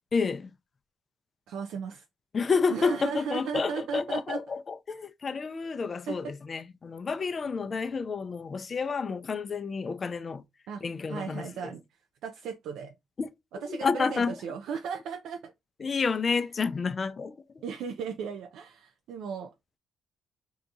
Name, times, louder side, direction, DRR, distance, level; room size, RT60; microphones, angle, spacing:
voice 1, 0.1-0.5 2.3-10.4 10.8-11.7 13.2-13.3 13.7-14.3 15.8-17.6, left 5 dB, 40° left, 0.4 m, -30 dB
voice 2, 1.5-2.0 2.7-4.4 6.1-6.2 10.7-10.8 11.1-11.8 12.2-12.9 13.6-15.5 17.6-19.5, right 6 dB, 80° right, 0.4 m, -36 dB
2.8 x 2.3 x 3.8 m
cardioid pair, 90°, 0 cm